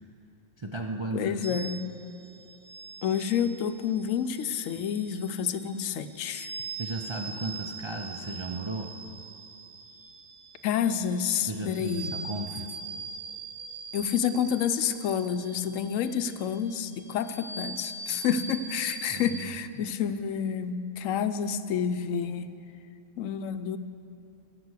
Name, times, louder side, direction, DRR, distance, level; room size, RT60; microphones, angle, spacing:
voice 1, 0.6-1.6 6.8-8.9 11.5-12.7 19.1-19.4, right 2 dB, 40° right, 2 dB, 0.4 m, -35 dB
voice 2, 1.1-1.8 3.0-6.5 10.6-12.1 13.9-22.5 23.2-23.8, left 8 dB, 80° left, 10 dB, 1.0 m, -29 dB
sound 1, 1.4-19.4, right 4 dB, 60° right, 1.0 m, -42 dB
16.5 x 5.9 x 8.2 m, 2.5 s
omnidirectional pair, 1.3 m